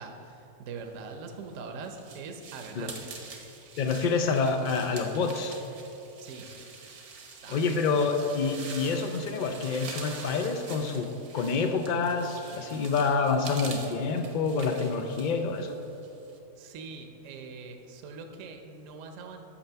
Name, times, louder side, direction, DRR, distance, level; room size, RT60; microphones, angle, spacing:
voice 1, 0.0-2.9 6.2-6.5 7.4-8.1 16.6-19.4, right 4 dB, 65° right, 5 dB, 1.0 m, -42 dB
sound 1, 1.2-16.4, right 4 dB, 85° right, 1.5 m, -45 dB
voice 2, 3.8-5.6 7.5-15.7, left 4 dB, 70° left, 5 dB, 0.4 m, -27 dB
8.7 x 6.7 x 5.6 m, 3.0 s
omnidirectional pair, 1.5 m